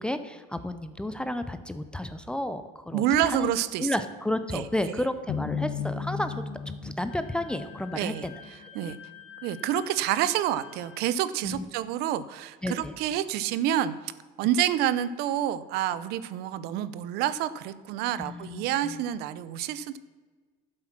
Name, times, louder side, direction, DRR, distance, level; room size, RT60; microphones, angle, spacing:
voice 1, 0.0-3.5 3.8-6.4 6.8-8.3 11.4-11.6 12.6-12.9 18.2-19.0, left 1 dB, 5° left, 10 dB, 0.5 m, -32 dB
voice 2, 2.9-3.9 4.5-4.6 7.9-8.3 8.7-9.0 9.4-14.1 14.4-20.0, right 11 dB, 60° right, 15 dB, 0.7 m, -28 dB
sound 1, 5.3-8.5, left 6 dB, 50° left, 0.9 m, -34 dB
Wind instrument woodwind instrument, 7.1-11.1, left 11 dB, 80° left, 2.9 m, -49 dB
12.0 x 7.7 x 5.9 m, 1.4 s
cardioid pair, 155°, 19 cm